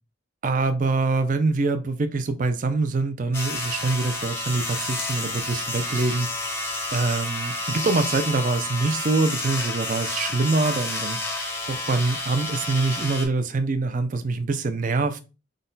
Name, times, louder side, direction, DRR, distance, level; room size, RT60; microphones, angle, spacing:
voice 1, 0.4-6.3 6.9-11.2 11.7-15.2, right 3 dB, 40° right, 0.4 m, -24 dB
sound 1, 3.3-13.3, left 2 dB, 10° left, 0.6 m, -30 dB
3.8 x 2.2 x 3.9 m
head